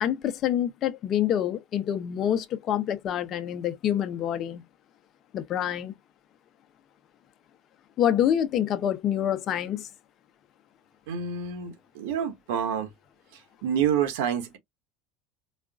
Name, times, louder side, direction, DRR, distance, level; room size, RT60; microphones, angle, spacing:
voice 1, 0.0-4.6 5.3-5.9 8.0-9.9, left 10 dB, 45° left, 0.7 m, -26 dB
voice 2, 11.1-12.9 13.6-14.6, right 8 dB, 80° right, 1.2 m, -28 dB
4.2 x 2.4 x 2.4 m
supercardioid pair, 105°, 0 cm